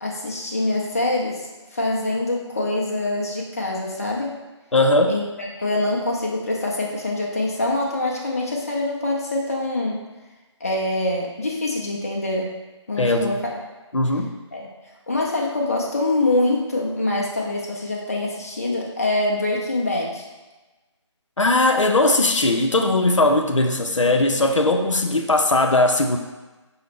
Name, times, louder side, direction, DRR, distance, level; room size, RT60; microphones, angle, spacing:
voice 1, 0.0-1.5 1.7-4.4 5.1-10.0 10.6-12.6 12.9-13.6 14.5-14.7 15.1-20.2, left 2 dB, 30° left, -2 dB, 0.5 m, -24 dB
voice 2, 4.7-5.1 13.0-13.4 13.9-14.3 21.4-26.2, left 2 dB, 90° left, 4 dB, 0.5 m, -19 dB
5.3 x 2.0 x 3.4 m, 1.2 s
figure-of-eight pair, 155°, 16 cm